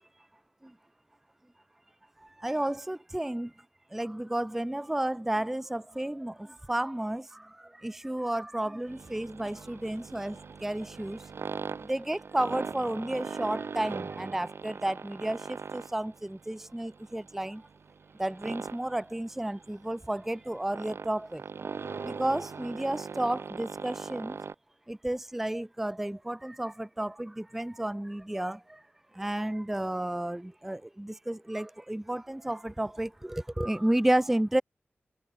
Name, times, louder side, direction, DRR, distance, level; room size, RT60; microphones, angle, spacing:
voice 1, 2.2-3.5 3.9-17.6 18.2-21.4 21.9-24.4 24.9-28.8 29.1-34.6, right 1 dB, 5° right, 0.3 m, -32 dB
sound 1, 8.9-24.6, right 5 dB, 70° right, 5.4 m, -41 dB
wide cardioid pair, 125°, 4 cm